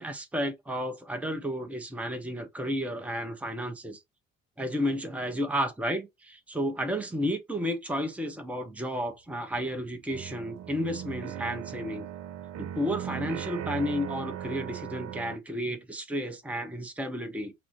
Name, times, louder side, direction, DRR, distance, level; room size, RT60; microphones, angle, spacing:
voice 1, 0.0-4.0 4.6-12.1 12.6-17.5, equal, 5° right, 0.8 m, -32 dB
sound 1, 9.1-9.2 9.5-15.4, right 10 dB, 45° right, 0.5 m, -38 dB
6.0 x 2.1 x 2.9 m
hypercardioid pair, 45°, 38 cm